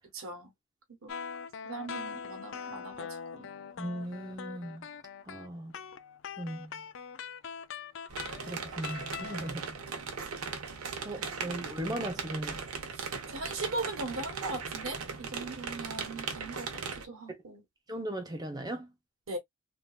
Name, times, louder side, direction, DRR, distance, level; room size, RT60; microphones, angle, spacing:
voice 1, 0.1-0.5 1.0-1.2 1.6-3.5 11.2-11.3 12.9-13.1 13.3-17.6 19.3-19.4, right 2 dB, 65° right, 1.2 m, -39 dB
sound 1, 1.1-9.5, left 6 dB, 55° left, 0.4 m, -42 dB
voice 2, 3.8-4.9 5.3-5.7 6.4-6.8 8.5-9.7 11.0-12.7 17.3-17.4 17.9-18.9, right 1 dB, 20° right, 0.7 m, -38 dB
sound 2, 8.1-17.0, right 5 dB, 80° right, 0.8 m, -38 dB
3.6 x 2.6 x 2.3 m
head